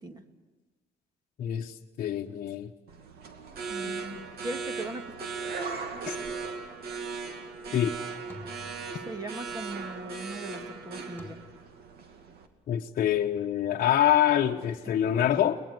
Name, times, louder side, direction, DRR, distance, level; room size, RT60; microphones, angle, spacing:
voice 1, 1.4-2.7 3.8-4.3 6.0-6.2 7.7-7.9 12.7-15.6, left 10 dB, 55° left, 0 dB, 1.1 m, -26 dB
sound 1, 2.9-12.5, right 5 dB, 70° right, 2.5 m, -38 dB
voice 2, 3.7-5.0 8.9-11.4, right 2 dB, 25° right, 6 dB, 2.0 m, -39 dB
sound 2, 6.3-6.7 8.3-9.5 11.2-11.3, left 2 dB, 10° left, 2.5 m, -49 dB
22.5 x 20.5 x 7.9 m, 1.3 s
cardioid pair, 110°, 17 cm